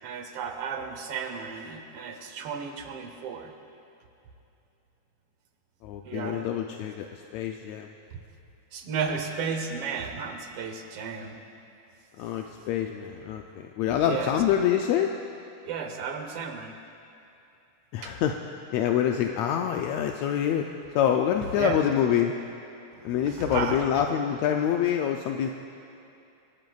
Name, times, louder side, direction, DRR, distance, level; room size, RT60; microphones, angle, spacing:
voice 1, 0.0-3.5 6.0-6.5 8.1-8.2 8.7-11.4 14.0-14.4 15.7-16.7 18.0-18.2 21.6-21.8 22.9-23.8, right 6 dB, 65° right, 5 dB, 1.5 m, -33 dB
voice 2, 5.8-7.1 7.3-7.9 12.2-13.4 13.8-15.1 17.9-18.3 18.7-20.7 20.9-22.3 23.0-25.5, left 9 dB, 85° left, 3 dB, 1.5 m, -26 dB
28.0 x 12.5 x 2.4 m, 2.7 s
omnidirectional pair, 3.6 m